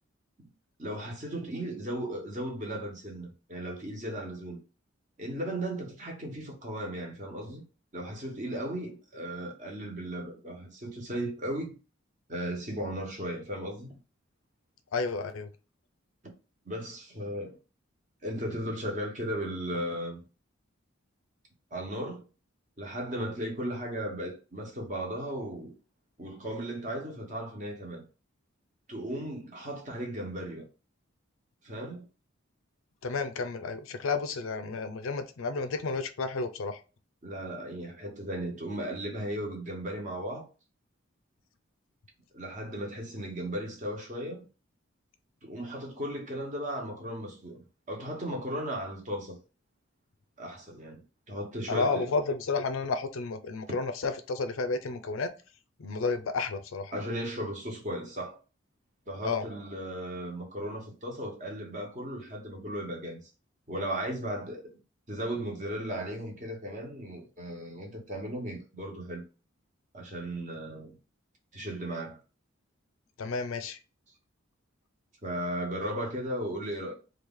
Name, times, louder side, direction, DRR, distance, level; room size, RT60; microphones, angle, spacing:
voice 1, 0.8-4.6 5.2-7.6 7.9-11.7 12.3-13.9 16.2-16.3 16.6-17.6 18.2-20.2 21.7-22.2 22.8-25.7 26.2-28.0 28.9-30.6 31.6-32.0 37.2-40.5 42.3-44.4 45.4-49.4 50.4-52.1 56.9-58.4 59.1-63.2 63.7-64.6 65.1-69.2 69.9-70.9 71.5-72.2 75.2-76.9, right 1 dB, 35° right, 1.0 m, -36 dB
voice 2, 14.9-15.5 33.0-36.8 51.7-55.3 55.8-56.9 59.2-59.4 73.2-73.8, left 4 dB, 80° left, 0.5 m, -31 dB
3.1 x 2.4 x 3.6 m
head